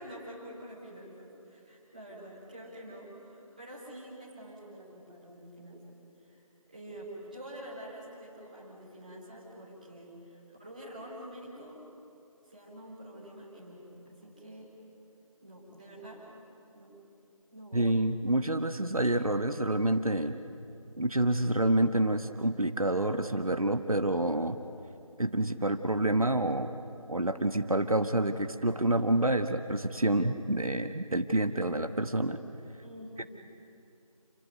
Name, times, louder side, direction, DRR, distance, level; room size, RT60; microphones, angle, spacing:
voice 1, 0.0-11.8 12.4-14.7 15.4-16.2 16.7-16.9 17.5-17.9 32.8-33.3, right 1 dB, 15° right, -8 dB, 4.0 m, -47 dB
voice 2, 17.7-20.4 21.0-24.6 25.2-26.7 27.1-32.4, right 1 dB, 75° right, 8 dB, 1.4 m, -28 dB
29.0 x 18.0 x 9.4 m, 2.7 s
figure-of-eight pair, 175°, 18 cm